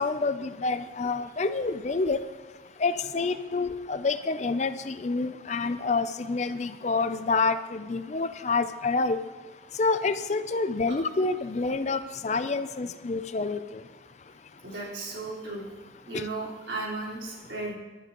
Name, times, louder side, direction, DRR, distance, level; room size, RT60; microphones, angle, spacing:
voice 1, 0.0-2.2 2.8-9.2 9.8-13.6, left 3 dB, 40° left, 11 dB, 0.5 m, -28 dB
voice 2, 14.6-15.7 16.1-17.7, right 2 dB, 75° right, -5 dB, 4.2 m, -35 dB
17.5 x 11.5 x 3.0 m, 1.2 s
head